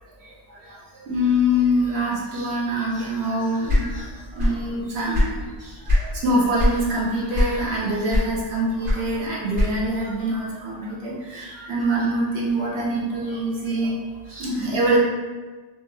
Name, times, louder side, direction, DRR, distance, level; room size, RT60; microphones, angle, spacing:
voice 1, 1.1-13.9 14.3-15.0, equal, 55° right, -6 dB, 0.9 m, -24 dB
sound 1, 3.6-4.7 5.0-6.1 6.6-6.8 7.3-7.8 8.1-10.0, left 1 dB, 75° right, 1.7 m, -21 dB
3.1 x 2.2 x 3.1 m, 1.3 s
omnidirectional pair, 1.4 m